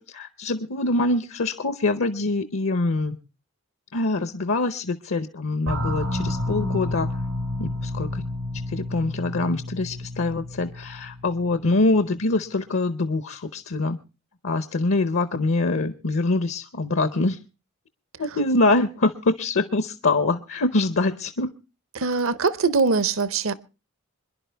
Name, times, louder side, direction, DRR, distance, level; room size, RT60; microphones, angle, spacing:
voice 1, 0.0-3.2 3.9-7.1 7.6-8.2 8.7-14.0 14.4-17.4 18.2-21.5, left 2 dB, 65° left, 0.7 m, -24 dB
sound 1, 5.7-12.0, left 1 dB, 85° right, 1.7 m, -30 dB
voice 2, 21.9-23.5, right 4 dB, 70° right, 0.8 m, -22 dB
25.5 x 11.0 x 3.4 m
head